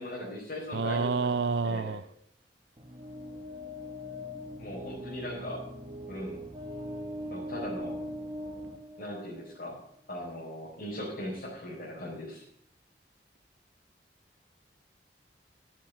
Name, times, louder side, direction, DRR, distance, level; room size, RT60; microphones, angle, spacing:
voice 1, 0.0-1.9 4.6-5.6 6.0-6.4 7.3-8.0 9.0-9.8 10.1-12.4, left 1 dB, 55° left, 4.5 m, -39 dB
voice 2, 0.7-2.0, right 4 dB, 75° right, 0.5 m, -28 dB
sound 1, 2.8-9.7, equal, 25° right, 1.7 m, -41 dB
14.0 x 7.5 x 6.5 m
head